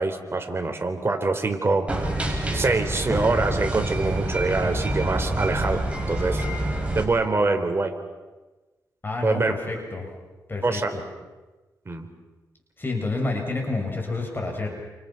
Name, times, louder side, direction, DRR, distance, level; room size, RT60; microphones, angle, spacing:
voice 1, 0.0-1.9 2.5-6.4 6.9-8.0 9.2-9.5 10.6-10.9 11.9-12.1, right 3 dB, 35° right, 5 dB, 4.1 m, -24 dB
sound 1, 1.9-7.0, right 1 dB, 15° right, 6.5 m, -27 dB
voice 2, 9.0-10.1 10.5-11.0 12.8-14.7, left 3 dB, 30° left, 1 dB, 7.4 m, -29 dB
29.5 x 28.0 x 6.0 m, 1.2 s
cardioid pair, 75°, 7 cm